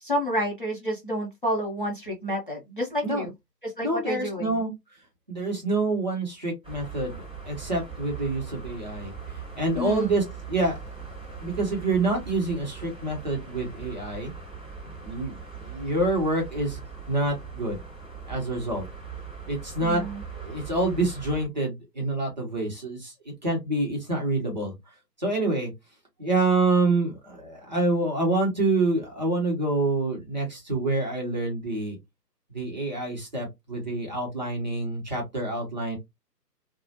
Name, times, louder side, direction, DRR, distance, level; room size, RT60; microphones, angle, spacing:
voice 1, 0.0-3.3 3.6-4.7 9.7-10.2 19.8-20.2, equal, 35° left, 0.5 m, -30 dB
voice 2, 3.8-4.7 5.3-7.2 7.5-9.1 9.6-10.8 11.4-14.3 15.0-16.8 17.1-17.8 18.3-18.9 19.5-20.0 20.3-24.7 25.2-25.7 26.2-32.0 32.5-36.0, right 2 dB, 25° right, 0.7 m, -27 dB
sound 1, 6.6-21.5, right 6 dB, 5° right, 0.9 m, -40 dB
2.6 x 2.1 x 2.7 m
figure-of-eight pair, 150°, 49 cm